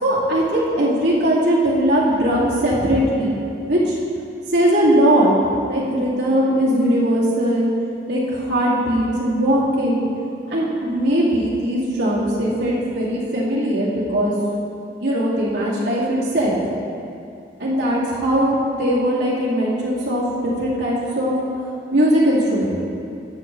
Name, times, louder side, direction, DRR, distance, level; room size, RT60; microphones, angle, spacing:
voice 1, 0.0-3.3 3.7-4.0 4.5-5.3 5.7-7.7 8.1-10.1 10.5-14.4 15.0-16.6 17.6-21.3 21.9-22.7, equal, 85° right, -7 dB, 2.2 m, -19 dB
13.0 x 7.3 x 3.1 m, 2.6 s
head